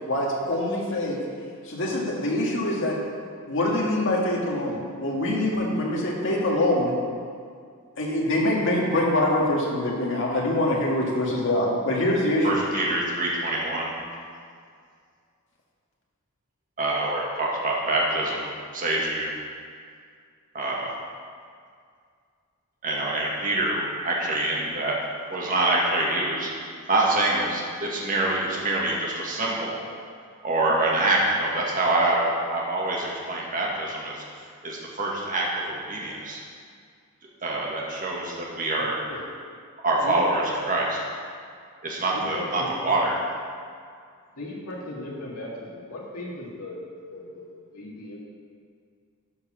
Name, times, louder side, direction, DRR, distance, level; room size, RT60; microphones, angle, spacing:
voice 1, 0.1-1.2 1.7-3.0 3.5-7.0 8.0-12.8, left 1 dB, 55° left, -3 dB, 1.8 m, -24 dB
voice 2, 12.4-13.9 16.8-19.3 20.5-21.0 22.8-25.0 25.3-26.5 26.9-29.8 30.4-34.2 34.6-36.4 37.4-39.0 39.8-41.0 41.8-43.2, right 2 dB, 35° right, -3 dB, 1.6 m, -25 dB
voice 3, 38.7-39.2 40.0-40.3 40.5-40.9 42.1-43.0 44.4-46.8 47.1-47.5 47.7-48.2, left 1 dB, 75° left, -5 dB, 1.9 m, -37 dB
12.0 x 4.7 x 6.1 m, 2.2 s
head